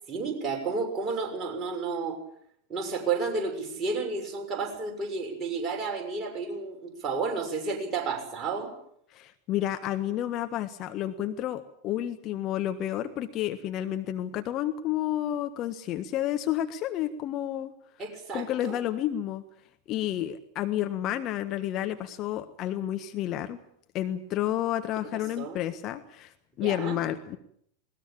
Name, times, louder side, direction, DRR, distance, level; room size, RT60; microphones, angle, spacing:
voice 1, 0.1-2.2 2.7-8.7 18.0-18.8 25.1-25.6 26.6-27.0, right 4 dB, 25° right, 2 dB, 6.5 m, -31 dB
voice 2, 9.1-17.7 18.3-19.4 19.9-23.6 23.9-27.4, left 12 dB, 35° left, 8 dB, 1.4 m, -30 dB
21.0 x 19.5 x 8.8 m, 0.69 s
figure-of-eight pair, 90°, 0 cm